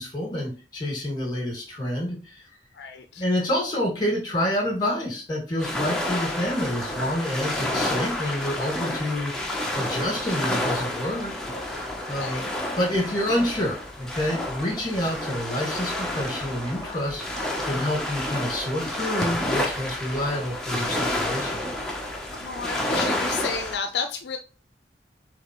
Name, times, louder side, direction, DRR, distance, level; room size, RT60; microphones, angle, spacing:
voice 1, 0.0-2.5 3.2-9.3 9.7-11.3 11.7-12.4 12.8-21.6, left 1 dB, 25° left, -2 dB, 2.0 m, -28 dB
voice 2, 2.7-3.2 12.2-12.5 22.3-24.4, left 5 dB, 70° left, 6 dB, 0.4 m, -32 dB
sound 1, 5.6-23.8, left 1 dB, 5° left, 0.7 m, -30 dB
5.1 x 3.2 x 3.0 m, 0.35 s
head